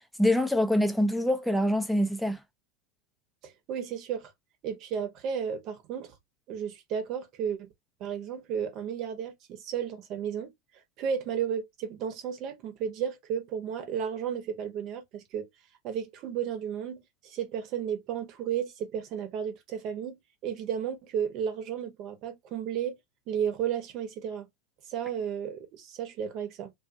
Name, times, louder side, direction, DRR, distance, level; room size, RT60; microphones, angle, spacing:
voice 1, 0.2-2.4, left 1 dB, ahead, 0.5 m, -25 dB
voice 2, 3.4-4.3 4.6-6.2 6.5-7.7 8.0-10.5 11.0-15.5 15.8-23.0 23.3-24.5 24.9-26.7, right 8 dB, 50° right, 0.9 m, -33 dB
2.5 x 2.3 x 2.6 m
hypercardioid pair, 95°, 0 cm